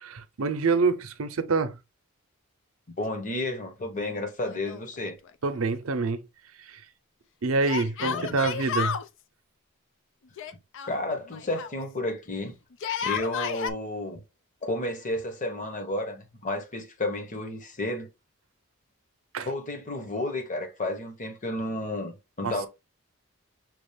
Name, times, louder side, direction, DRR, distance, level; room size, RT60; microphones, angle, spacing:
voice 1, 0.0-1.7 5.4-6.2 6.7-6.8 7.4-9.0 19.3-19.5 22.4-22.5, right 4 dB, 70° right, 0.6 m, -26 dB
voice 2, 3.0-5.2 8.0-8.4 10.9-12.5 13.0-14.2 14.6-18.1 19.4-22.7, left 1 dB, 35° left, 1.1 m, -32 dB
Yell, 4.4-5.3 5.5-5.6 7.7-9.1 10.4-11.8 12.7-13.7, left 7 dB, 60° left, 0.4 m, -32 dB
6.1 x 2.4 x 3.4 m
head